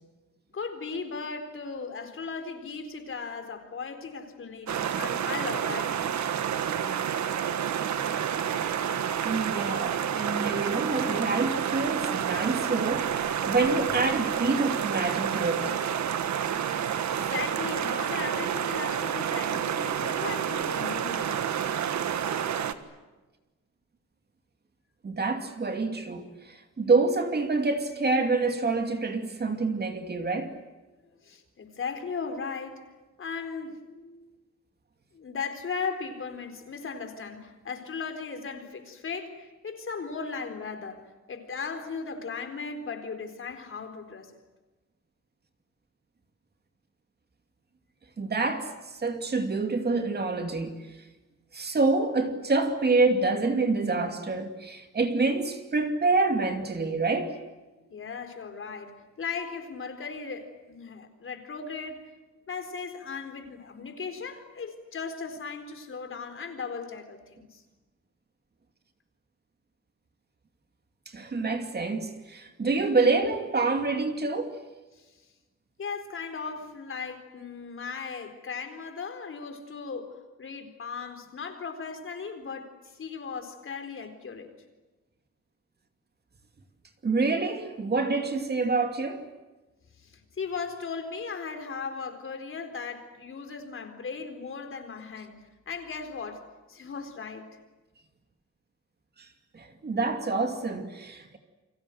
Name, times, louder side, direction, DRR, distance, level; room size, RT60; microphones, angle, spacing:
voice 1, 0.5-6.0 16.6-16.7 17.1-21.5 31.1-32.8 33.2-34.3 35.1-44.4 57.9-62.0 62.5-67.6 74.9-75.1 75.8-82.7 83.0-84.5 90.0-97.5, left 5 dB, 45° left, 4.2 m, -37 dB
sound 1, 4.7-22.7, right 9 dB, 70° right, 1.7 m, -29 dB
voice 2, 9.2-15.7 25.0-30.5 48.2-48.7 49.0-50.8 51.5-57.3 71.1-74.6 87.0-89.2 99.5-101.4, right 3 dB, 35° right, 2.6 m, -27 dB
30.0 x 25.5 x 7.9 m
wide cardioid pair, 150°, 30 cm